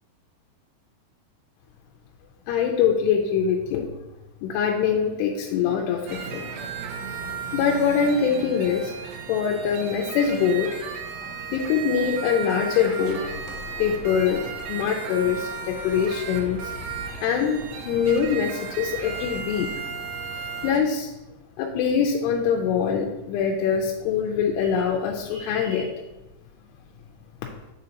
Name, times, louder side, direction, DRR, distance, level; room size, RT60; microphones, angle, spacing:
voice 1, 2.5-3.9 4.4-6.5 7.5-8.9 9.3-10.7 11.5-16.7 17.2-17.6 17.8-19.7 20.6-21.1 21.6-26.0, left 7 dB, 90° left, 1 dB, 2.7 m, -24 dB
sound 1, 6.1-20.8, right 6 dB, 75° right, 2.5 m, -35 dB
8.6 x 5.1 x 2.8 m, 1.0 s
omnidirectional pair, 4.8 m